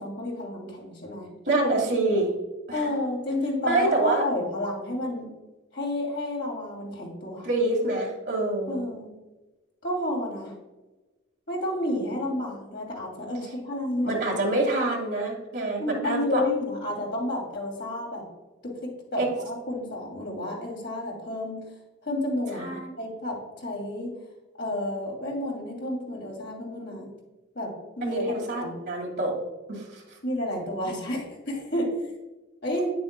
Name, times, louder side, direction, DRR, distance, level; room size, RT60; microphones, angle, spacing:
voice 1, 0.0-1.3 2.7-5.3 5.7-7.5 8.7-9.1 9.8-10.5 11.5-14.2 15.8-18.2 18.6-21.6 22.0-24.1 24.6-27.1 27.5-27.7 28.0-28.7 30.2-31.9 32.6-32.9, left 1 dB, 55° left, -1 dB, 2.6 m, -31 dB
voice 2, 1.5-2.3 2.7-2.9 3.7-4.2 7.4-8.8 14.0-16.4 19.2-19.3 22.5-22.9 28.0-29.3 29.7-30.2, right 2 dB, 55° right, -1 dB, 2.2 m, -26 dB
9.0 x 7.7 x 2.2 m, 1.1 s
head